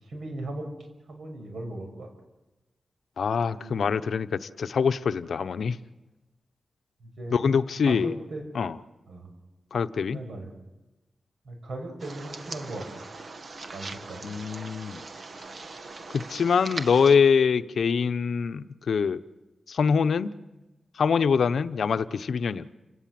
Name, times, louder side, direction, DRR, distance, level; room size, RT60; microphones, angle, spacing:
voice 1, 0.0-0.7 1.1-2.1 3.5-3.9 7.0-7.4 7.8-8.5 9.1-9.3 10.1-10.5 11.4-12.9 13.7-14.3, right 2 dB, 80° right, 4 dB, 6.1 m, -37 dB
voice 2, 3.2-5.8 7.3-8.1 8.5-8.8 9.7-10.2 14.2-15.0 16.1-19.2 19.7-20.3 21.0-22.7, left 6 dB, 80° left, 12 dB, 0.8 m, -24 dB
sound 1, 12.0-17.2, right 3 dB, 50° right, 1.6 m, -40 dB
29.0 x 18.0 x 7.6 m, 1.1 s
wide cardioid pair, 120°, 0 cm